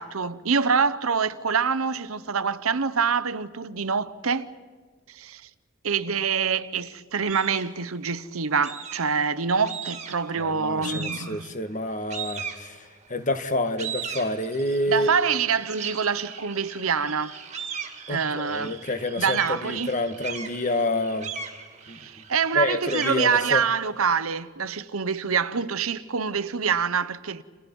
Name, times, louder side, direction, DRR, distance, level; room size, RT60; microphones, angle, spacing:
voice 1, 0.0-4.5 5.1-5.4 5.8-11.5 14.9-17.3 18.1-18.7 19.2-19.9 21.9-27.4, right 6 dB, 90° right, 0.9 m, -25 dB
sound 1, 7.3-7.8 8.6-9.2 9.7-10.3 10.8-11.5 12.1-13.1 13.5-24.2, right 6 dB, 35° right, 2.1 m, -38 dB
voice 2, 10.3-12.8 13.1-15.1 18.1-21.3 21.9-22.0 22.5-23.6, left 2 dB, 35° left, 1.5 m, -28 dB
30.0 x 28.5 x 5.4 m
head